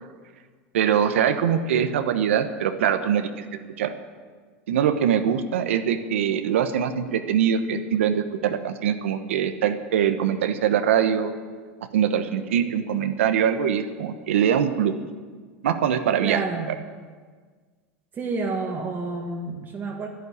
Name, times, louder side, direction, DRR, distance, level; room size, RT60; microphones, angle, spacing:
voice 1, 0.7-3.4 3.8-3.9 4.7-11.3 11.9-14.9 15.6-16.4, right 8 dB, 85° right, 8 dB, 1.1 m, -23 dB
voice 2, 16.2-16.7 18.1-20.1, right 3 dB, 30° right, -1 dB, 1.8 m, -29 dB
11.5 x 11.0 x 8.5 m, 1.5 s
hypercardioid pair, 105°, 7 cm